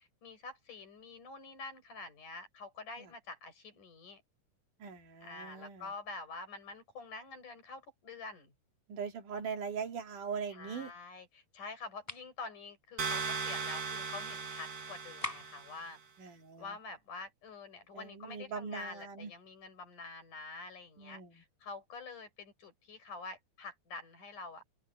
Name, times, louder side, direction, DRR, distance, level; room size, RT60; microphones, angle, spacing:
voice 1, 0.0-4.2 5.2-8.5 10.5-16.0 16.6-24.6, left 3 dB, 70° left, 7.9 m, -47 dB
voice 2, 4.8-5.9 8.9-10.9 16.2-16.7 17.9-19.3 21.0-21.4, right 6 dB, 75° right, 4.0 m, -41 dB
sound 1, 12.0-12.3 15.2-15.7, left 2 dB, 10° left, 3.5 m, -40 dB
sound 2, 13.0-15.9, right 5 dB, 55° right, 4.7 m, -38 dB
open air
omnidirectional pair, 3.7 m